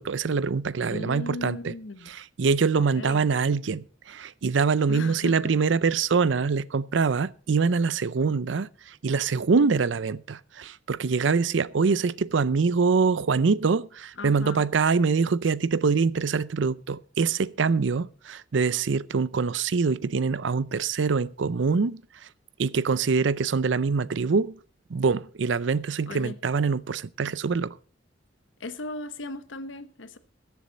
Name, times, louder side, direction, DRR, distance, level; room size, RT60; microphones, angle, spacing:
voice 1, 0.0-1.7 2.1-8.7 9.0-22.0 22.6-24.6 24.9-27.8, right 5 dB, 75° right, 0.5 m, -24 dB
voice 2, 0.9-2.1 2.8-3.2 4.9-5.5 14.2-14.6 26.1-26.4 28.6-30.2, left 2 dB, 85° left, 1.1 m, -37 dB
21.0 x 7.0 x 4.1 m
head